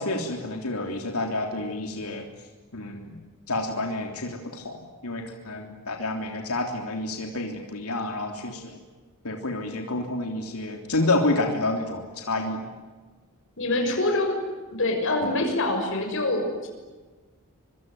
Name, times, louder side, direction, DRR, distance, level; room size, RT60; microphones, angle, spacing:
voice 1, 0.0-2.2 2.7-3.1 3.5-8.8 9.2-12.6, left 2 dB, 85° left, 3 dB, 3.5 m, -29 dB
voice 2, 13.6-14.4 14.7-16.7, left 2 dB, 60° left, 3 dB, 6.5 m, -25 dB
25.0 x 25.0 x 9.5 m, 1.3 s
head